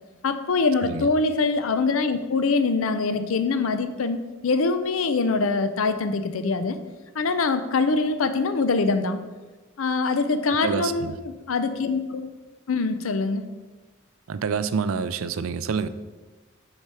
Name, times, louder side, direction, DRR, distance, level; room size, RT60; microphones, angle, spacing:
voice 1, 0.2-6.8 7.1-9.2 9.8-12.3 12.7-13.4, left 4 dB, 90° left, 10 dB, 0.6 m, -24 dB
voice 2, 10.5-11.2 14.3-15.9, right 5 dB, 85° right, 13 dB, 0.4 m, -27 dB
6.6 x 4.4 x 4.7 m, 1.2 s
head